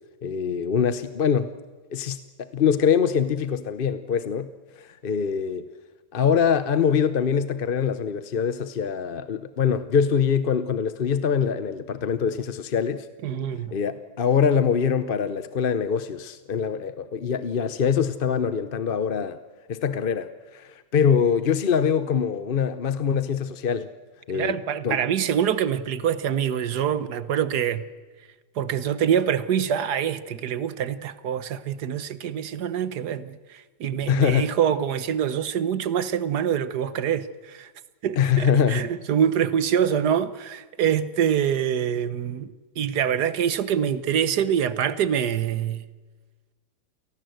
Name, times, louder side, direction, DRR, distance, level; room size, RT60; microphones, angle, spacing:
voice 1, 0.2-1.5 1.9-2.2 2.5-4.5 4.8-5.7 6.1-13.1 13.7-19.4 19.7-23.9 24.3-24.6 24.8-25.0 34.1-34.5 38.2-38.9, left 7 dB, 45° left, 0.8 m, -23 dB
voice 2, 13.2-13.8 24.3-27.8 28.5-37.7 38.0-45.8, right 9 dB, 80° right, 1.6 m, -25 dB
29.0 x 18.5 x 7.9 m
omnidirectional pair, 1.7 m